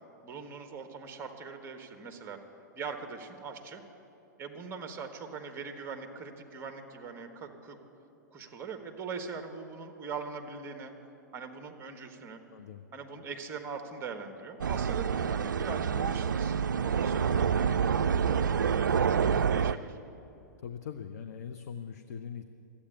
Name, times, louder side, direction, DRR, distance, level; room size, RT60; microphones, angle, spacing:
voice 1, 0.2-2.4 2.7-3.8 4.4-7.8 8.3-10.9 11.3-12.4 12.9-17.7 18.0-20.0, right 5 dB, 25° right, 5 dB, 1.4 m, -41 dB
voice 2, 12.5-12.8 20.6-22.5, left 7 dB, 55° left, 7 dB, 0.7 m, -41 dB
sound 1, 14.6-19.7, right 7 dB, 75° right, 0.4 m, -27 dB
13.0 x 8.6 x 9.5 m, 2.9 s
figure-of-eight pair, 110°, 10 cm